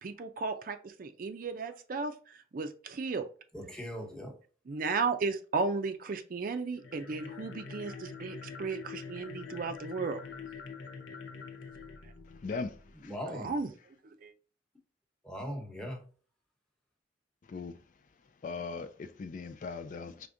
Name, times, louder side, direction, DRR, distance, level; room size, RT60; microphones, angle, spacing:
voice 1, 0.0-3.3 4.7-10.2 13.3-13.7 14.0-14.3, right 4 dB, 50° right, 0.4 m, -35 dB
voice 2, 3.5-4.3 13.0-13.5 15.2-16.0, equal, 5° left, 1.0 m, -39 dB
sound 1, 6.7-13.0, left 5 dB, 90° left, 0.7 m, -45 dB
voice 3, 12.2-13.1 17.5-17.8 18.4-20.3, left 4 dB, 45° left, 0.4 m, -39 dB
4.9 x 3.4 x 2.6 m
head